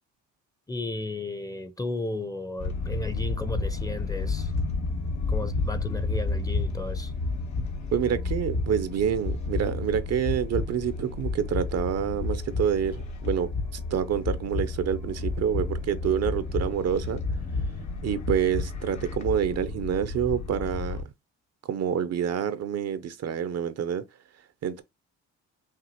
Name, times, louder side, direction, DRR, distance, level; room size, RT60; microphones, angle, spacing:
voice 1, 0.7-4.5 5.3-7.1, left 2 dB, 10° left, 0.6 m, -34 dB
sound 1, 2.6-21.0, left 3 dB, 70° left, 1.2 m, -31 dB
voice 2, 7.9-17.2 18.0-21.0 21.7-24.0 24.6-24.8, right 8 dB, 55° right, 0.6 m, -27 dB
5.9 x 2.5 x 2.8 m
cardioid pair, 90°, 30 cm